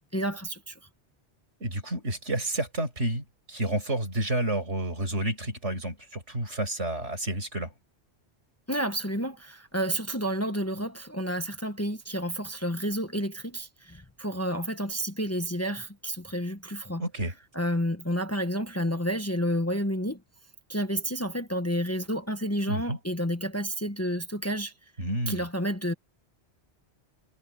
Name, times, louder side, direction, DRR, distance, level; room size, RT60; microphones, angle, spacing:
voice 1, 0.1-0.8 8.7-17.0 17.5-20.2 20.7-24.7 25.3-25.9, equal, 15° left, 1.1 m, -30 dB
voice 2, 1.6-7.7 17.0-17.3 22.7-23.0 25.0-25.5, right 1 dB, 85° right, 6.6 m, -30 dB
omnidirectional pair, 1.2 m